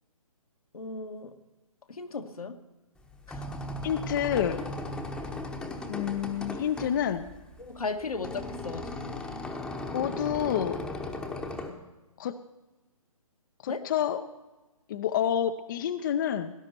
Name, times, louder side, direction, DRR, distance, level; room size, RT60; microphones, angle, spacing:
voice 1, 0.7-1.4 1.9-2.5 3.3-3.4 7.6-9.3 13.7-13.9, left 4 dB, 80° left, 5 dB, 1.5 m, -36 dB
sound 1, 3.0-11.7, left 2 dB, 5° left, 0.9 m, -37 dB
voice 2, 3.8-4.6 5.9-7.3 9.9-10.8 12.2-12.4 13.6-14.2 14.9-16.5, left 9 dB, 35° left, 10 dB, 0.6 m, -28 dB
18.5 x 10.5 x 4.4 m, 1.1 s
figure-of-eight pair, 140°, 18 cm